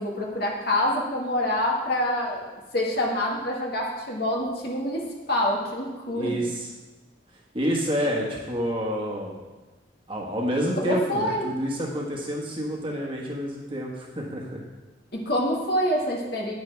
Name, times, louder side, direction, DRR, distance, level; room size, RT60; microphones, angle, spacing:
voice 1, 0.0-2.4 2.7-6.4 10.8-11.5 15.1-16.5, left 1 dB, 55° left, -1 dB, 1.7 m, -26 dB
voice 2, 6.1-6.7 7.5-9.4 10.1-14.6, equal, 25° right, -2 dB, 1.5 m, -28 dB
9.6 x 9.4 x 3.5 m, 1.2 s
head